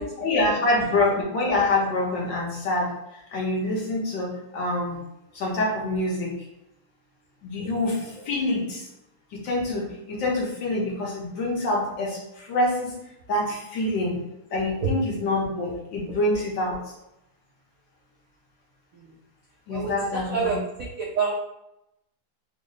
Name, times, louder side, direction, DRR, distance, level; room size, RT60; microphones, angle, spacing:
voice 1, 0.0-5.0 5.3-6.4 7.4-8.9 9.3-13.0 13.3-14.2 14.5-16.8 19.7-20.5, left 2 dB, 75° left, -4 dB, 1.6 m, -26 dB
voice 2, 19.7-21.3, right 5 dB, 80° right, -3 dB, 0.7 m, -29 dB
3.7 x 2.1 x 3.7 m, 0.87 s
omnidirectional pair, 2.1 m